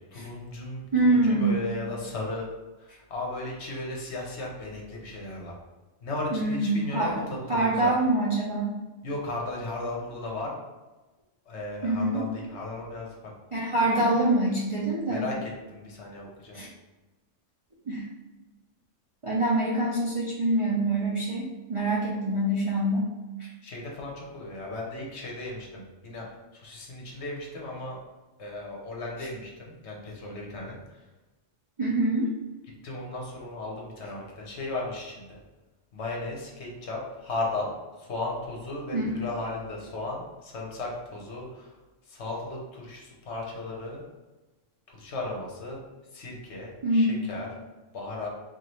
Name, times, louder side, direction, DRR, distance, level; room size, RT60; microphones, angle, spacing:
voice 1, 0.1-0.8 1.1-2.5 3.1-5.5 6.0-7.2 7.8-7.9 9.0-10.5 11.5-13.1 14.0-14.1 15.1-16.6 23.6-26.2 26.5-28.0 28.4-30.8 32.8-35.3 35.9-37.7 38.0-41.7 42.1-44.0 44.9-45.8 46.1-47.5 47.9-48.3, left 2 dB, 65° left, -2 dB, 1.1 m, -35 dB
voice 2, 0.9-1.6 6.3-8.8 11.8-12.2 13.5-15.3 16.5-16.7 17.9-18.0 19.2-23.1 31.8-32.3 38.9-39.1 46.8-47.1, right 1 dB, 40° right, -6 dB, 0.4 m, -25 dB
4.7 x 2.4 x 3.0 m, 1.2 s
omnidirectional pair, 1.3 m